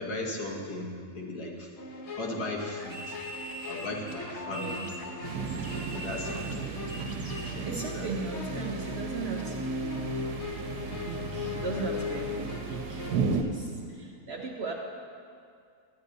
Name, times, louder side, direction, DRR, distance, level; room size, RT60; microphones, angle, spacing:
voice 1, 0.0-1.7 2.2-5.4 5.9-6.7 7.5-7.7 7.9-8.1, left 2 dB, 75° left, -2 dB, 1.8 m, -37 dB
sound 1, 1.8-13.2, left 3 dB, 55° left, 1.0 m, -38 dB
sound 2, 2.8-7.6, equal, 15° left, 0.9 m, -42 dB
voice 2, 4.5-4.9 6.6-7.1 7.6-10.5 10.9-14.7, right 4 dB, 55° right, 0 dB, 0.8 m, -38 dB
sound 3, 5.2-13.4, right 5 dB, 80° right, 1.2 m, -35 dB
13.0 x 9.6 x 2.6 m, 2.3 s
omnidirectional pair, 1.7 m